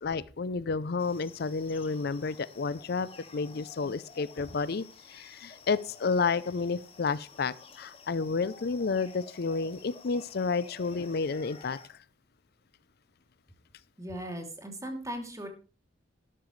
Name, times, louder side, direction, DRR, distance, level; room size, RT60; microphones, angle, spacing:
voice 1, 0.0-12.0, left 4 dB, 60° left, 18 dB, 0.5 m, -31 dB
sound 1, 1.0-11.9, left 4 dB, 30° left, 2.0 m, -52 dB
voice 2, 14.0-15.5, right 1 dB, 20° right, 4 dB, 2.8 m, -38 dB
12.5 x 11.5 x 3.2 m, 0.36 s
head